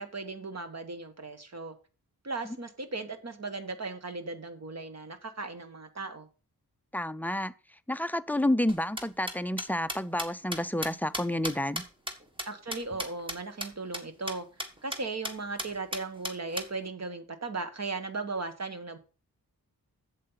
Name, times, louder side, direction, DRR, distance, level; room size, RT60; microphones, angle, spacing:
voice 1, 0.0-1.7 2.2-6.3 12.5-14.5 14.8-19.0, right 3 dB, 45° right, 1.4 m, -37 dB
voice 2, 6.9-7.5 7.9-11.8, left 1 dB, 5° left, 0.4 m, -29 dB
sound 1, 8.7-13.4 13.6-13.7 13.9-14.0 14.3-14.4 14.6-15.0 15.2-15.3 15.6-16.7, equal, 15° right, 1.5 m, -35 dB
7.7 x 7.5 x 5.7 m
wide cardioid pair, 125°, 36 cm